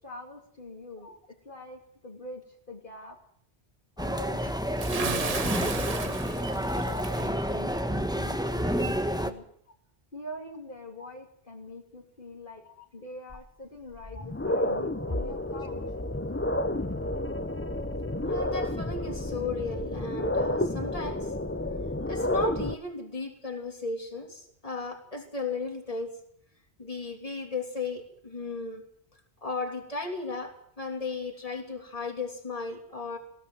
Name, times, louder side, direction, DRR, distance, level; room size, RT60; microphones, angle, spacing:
voice 1, 0.0-1.1 1.4-3.2 4.0-5.5 5.7-9.4 10.1-12.6 12.9-15.8, left 1 dB, 50° left, 0 dB, 3.1 m, -44 dB
sound 1, 4.0-9.3, equal, 5° right, 1.3 m, -29 dB
Bathtub (filling or washing) / Splash splatter, 4.8-7.3, right 4 dB, 35° right, 1.0 m, -34 dB
sound 2, 13.3-13.4 13.9-22.7, left 1 dB, 15° left, 0.8 m, -30 dB
voice 2, 18.2-21.3 22.0-26.1 26.8-28.8 29.4-33.2, left 3 dB, 30° left, 3 dB, 3.2 m, -35 dB
21.0 x 17.0 x 7.8 m, 0.65 s
omnidirectional pair, 1.1 m